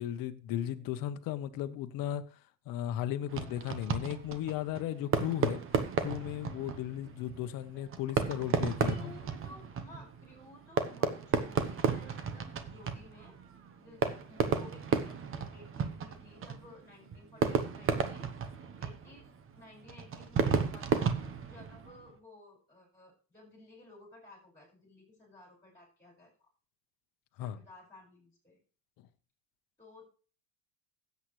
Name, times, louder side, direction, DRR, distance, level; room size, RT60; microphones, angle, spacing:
voice 1, 0.0-2.2 2.7-5.6 6.0-9.1 27.4-27.6, left 11 dB, 50° left, 1.1 m, -35 dB
Fireworks, 3.3-22.1, right 6 dB, 30° right, 1.1 m, -34 dB
voice 2, 8.8-13.4 13.8-18.3 18.8-19.3 19.5-21.1 21.4-26.3 27.4-28.6 29.8-30.1, left 2 dB, 5° left, 5.5 m, -55 dB
16.0 x 8.2 x 3.2 m
cardioid pair, 145°, 44 cm